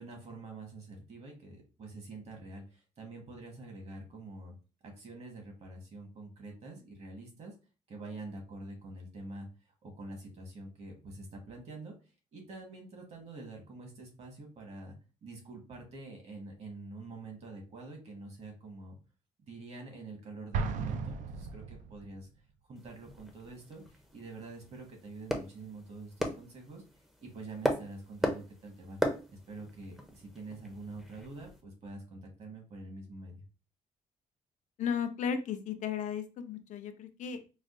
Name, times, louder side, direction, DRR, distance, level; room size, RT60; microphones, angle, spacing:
voice 1, 0.0-4.5 4.8-7.5 7.9-9.5 9.8-12.0 12.3-15.0 15.2-19.0 19.5-22.3 22.7-26.8 27.2-29.0 29.3-33.4, right 2 dB, 55° right, 2 dB, 1.3 m, -46 dB
Explosion, 20.5-22.2, right 5 dB, 70° right, 0.4 m, -35 dB
sound 1, 22.8-31.6, equal, ahead, 0.5 m, -38 dB
voice 2, 34.8-37.5, left 7 dB, 70° left, 8 dB, 0.5 m, -35 dB
4.8 x 2.2 x 2.5 m, 0.32 s
cardioid pair, 130°, 13 cm